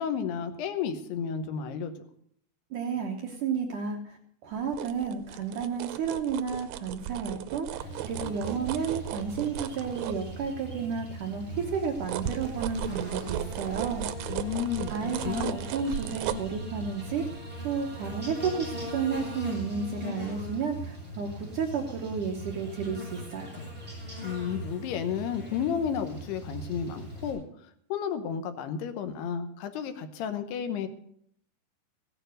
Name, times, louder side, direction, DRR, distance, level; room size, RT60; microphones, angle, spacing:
voice 1, 0.0-1.9 14.3-15.6 24.2-27.4 27.9-30.9, left 7 dB, 75° left, 8 dB, 2.9 m, -32 dB
voice 2, 2.7-14.1 14.9-23.5, right 6 dB, 70° right, 2 dB, 2.0 m, -32 dB
sound 1, 4.5-10.8 11.2-18.8 19.1-19.3, right 13 dB, 90° right, 3.0 m, -37 dB
Buzz, 7.8-27.3, equal, ahead, 6.9 m, -40 dB
16.0 x 9.1 x 6.5 m, 0.66 s
omnidirectional pair, 5.0 m